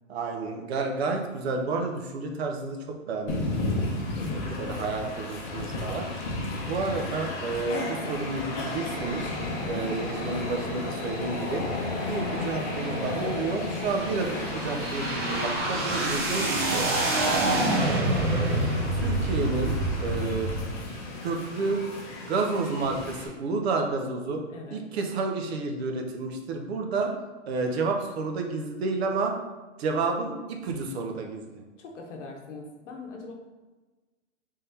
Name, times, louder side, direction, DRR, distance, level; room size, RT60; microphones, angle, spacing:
voice 1, 0.1-3.5 4.6-6.1 6.6-9.2 9.7-11.7 12.0-17.0 18.9-20.5 21.2-21.8 22.2-24.4 24.7-27.1 27.5-29.3 29.8-31.6, right 3 dB, 55° right, 3 dB, 0.8 m, -30 dB
Train, 3.3-23.3, left 2 dB, 30° left, 0.7 m, -33 dB
voice 2, 3.9-5.2 9.6-9.9 17.2-17.7 18.4-18.7 24.5-24.8 31.8-33.3, left 3 dB, 70° left, 1 dB, 0.8 m, -42 dB
sound 1, 8.9-20.6, right 2 dB, 15° right, 0.5 m, -29 dB
3.7 x 3.3 x 2.8 m, 1.2 s
hypercardioid pair, 140°, 37 cm